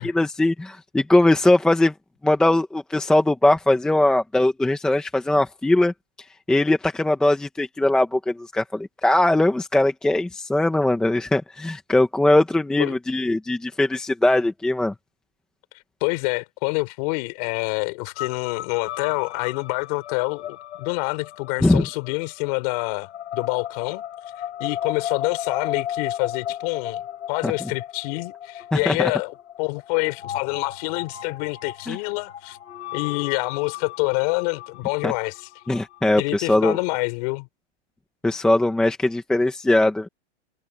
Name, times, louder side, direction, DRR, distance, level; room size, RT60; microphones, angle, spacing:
voice 1, 0.0-1.9 2.2-5.9 6.5-14.9 21.6-21.9 27.4-27.5 28.7-29.1 31.9-32.0 35.0-35.1 35.7-36.8 38.2-40.1, left 1 dB, ahead, 0.9 m, -20 dB
voice 2, 16.0-24.0 24.6-27.0 27.3-32.6 32.9-35.5 36.2-37.5, left 28 dB, 30° left, 3.7 m, -27 dB
sound 1, 18.2-36.3, left 11 dB, 80° left, 3.6 m, -35 dB
hypercardioid pair, 170°, 35 cm